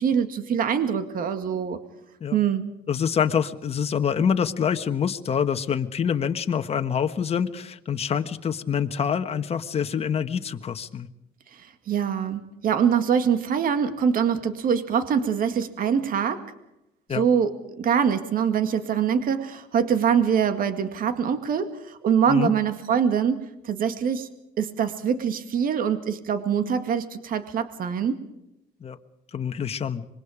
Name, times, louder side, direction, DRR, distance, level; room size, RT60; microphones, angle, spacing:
voice 1, 0.0-1.8 2.3-2.7 11.5-16.4 17.1-24.3 24.6-28.2, right 7 dB, 55° right, 9 dB, 2.1 m, -24 dB
voice 2, 2.9-11.1 17.1-17.2 22.3-22.5 28.8-29.0 29.3-30.1, left 7 dB, 35° left, 7 dB, 1.4 m, -26 dB
25.5 x 22.5 x 5.0 m, 0.88 s
cardioid pair, 110°, 17 cm